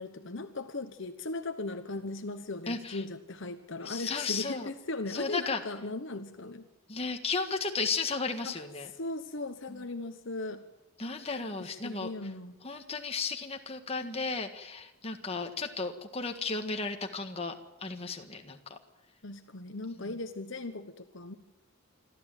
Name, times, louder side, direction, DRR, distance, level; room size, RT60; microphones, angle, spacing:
voice 1, 0.0-6.6 8.4-8.6 8.9-10.6 11.6-12.6 19.2-21.3, left 2 dB, 55° left, 8 dB, 1.1 m, -38 dB
voice 2, 2.7-3.0 3.8-4.7 5.1-5.6 6.9-8.9 9.7-9.8 11.0-12.1 12.6-18.8, left 4 dB, 25° left, 5 dB, 1.7 m, -34 dB
26.5 x 13.0 x 9.1 m, 0.97 s
head